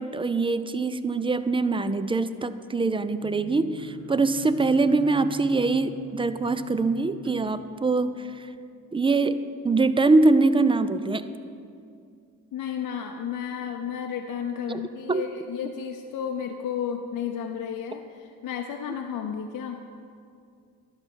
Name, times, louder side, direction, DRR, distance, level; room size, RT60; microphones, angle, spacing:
voice 1, 0.0-8.5 8.9-11.3 14.7-14.8 15.1-15.3, right 3 dB, 15° right, 13 dB, 0.3 m, -23 dB
sound 1, 3.2-7.8, right 4 dB, 40° right, 1.2 m, -42 dB
voice 2, 12.5-19.8, left 8 dB, 55° left, 3 dB, 0.6 m, -32 dB
11.5 x 5.9 x 4.6 m, 2.4 s
supercardioid pair, 60°, 37 cm